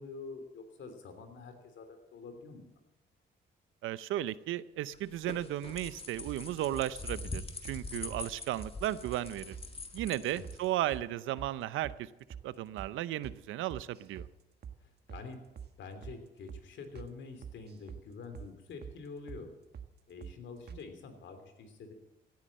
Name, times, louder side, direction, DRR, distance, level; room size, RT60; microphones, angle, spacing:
voice 1, 0.0-2.7 7.9-8.1 10.3-10.5 14.8-15.4 15.8-19.5 20.1-21.9, left 4 dB, 70° left, 7 dB, 3.2 m, -47 dB
voice 2, 3.8-9.5 9.9-12.1 12.4-14.3, right 13 dB, 85° right, 17 dB, 0.7 m, -35 dB
sound 1, 4.9-11.0, left 3 dB, 30° left, 2.0 m, -44 dB
sound 2, 6.3-6.9 7.2-7.3 7.6-7.8 8.1-8.3 8.6-8.7 9.0-9.2 9.5-9.7 10.0-10.6 10.9-11.1 11.4-11.5 11.8-12.0 12.3-12.5 12.8-12.9 13.2-13.4 13.7-14.3 14.6-14.8 15.1-15.3 15.6-15.7 16.0-16.2 16.5-16.6 16.9-17.1 17.4-18.0 18.3-18.5 18.8-19.0 19.3-19.4 19.7-19.9 20.2-20.4 20.7-20.8, right 7 dB, 55° right, 1.4 m, -46 dB
16.5 x 9.7 x 7.5 m, 1.0 s
cardioid pair, 90°, 20 cm